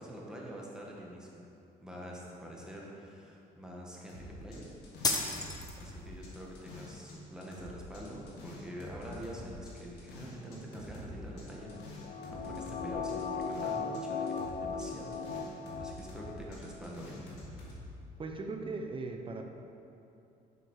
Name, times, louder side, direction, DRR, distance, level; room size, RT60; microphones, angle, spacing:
voice 1, 0.0-1.4 1.8-4.7 5.8-15.2 15.8-17.2 17.5-17.8, equal, 5° right, -3 dB, 1.3 m, -45 dB
sound 1, 4.1-7.1 7.4-14.0 14.3-17.8, left 1 dB, 85° left, 1.8 m, -47 dB
sound 2, 5.0-6.1, left 3 dB, 25° left, 0.9 m, -32 dB
sound 3, 11.6-16.4 16.7-16.8, left 5 dB, 45° left, 0.5 m, -38 dB
voice 2, 18.2-19.4, right 3 dB, 30° right, 4 dB, 0.7 m, -38 dB
7.0 x 6.5 x 4.7 m, 2.7 s
cardioid pair, 110°, 17 cm